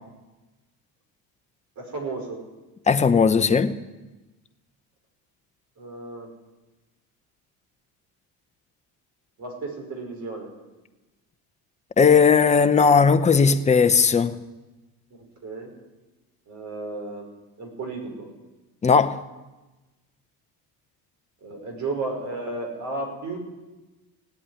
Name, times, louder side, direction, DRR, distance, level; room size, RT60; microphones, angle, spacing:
voice 1, 1.8-2.4 5.8-6.3 9.4-10.5 15.4-15.7 16.5-17.3 17.6-18.3 21.4-23.4, right 3 dB, 45° right, 5.3 m, -33 dB
voice 2, 2.9-3.7 12.0-14.4 18.8-19.2, left 5 dB, 15° left, 0.7 m, -17 dB
17.0 x 8.5 x 9.9 m
cardioid pair, 125°, 39 cm